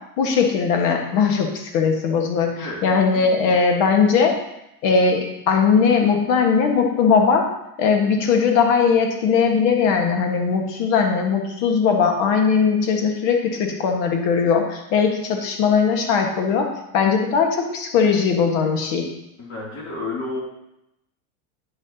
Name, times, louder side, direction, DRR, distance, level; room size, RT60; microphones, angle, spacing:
voice 1, 0.2-4.4 4.8-7.5 7.8-19.1, left 5 dB, 60° left, 3 dB, 1.6 m, -19 dB
voice 2, 19.4-20.4, left 2 dB, 35° left, -3 dB, 2.9 m, -30 dB
9.7 x 6.6 x 2.9 m, 0.86 s
supercardioid pair, 115°, 46 cm